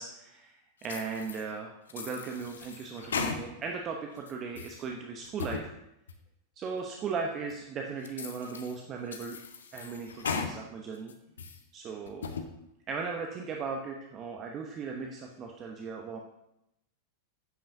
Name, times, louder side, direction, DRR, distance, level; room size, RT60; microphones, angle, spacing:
voice 1, 0.0-5.7 6.6-9.4 9.7-11.1 11.7-12.2 12.9-16.2, right 5 dB, 30° right, 2 dB, 0.9 m, -37 dB
sound 1, 0.8-1.4 1.9-3.8 4.2-4.8 5.2-5.7 6.1-6.2 6.8-6.9 7.5-7.6 8.0-8.7 9.1-10.5 10.9-11.6 12.1-12.5, left 5 dB, 65° left, 0.8 m, -37 dB
12.5 x 8.8 x 2.7 m, 0.84 s
figure-of-eight pair, 90°, 0 cm